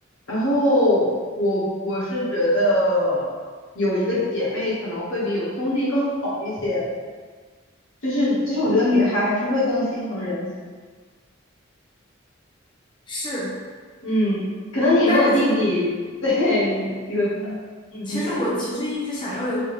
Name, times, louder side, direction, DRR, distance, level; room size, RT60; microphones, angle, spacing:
voice 1, 0.3-1.1 1.4-3.2 3.7-6.8 8.0-10.5 14.0-14.4 14.7-15.8 16.2-17.3 17.9-18.4, left 1 dB, 80° left, -8 dB, 1.4 m, -22 dB
voice 2, 13.1-13.5 15.1-15.6 17.3-17.5 17.9-19.6, left 1 dB, 25° left, -7 dB, 0.8 m, -27 dB
3.6 x 3.2 x 3.1 m, 1.5 s
head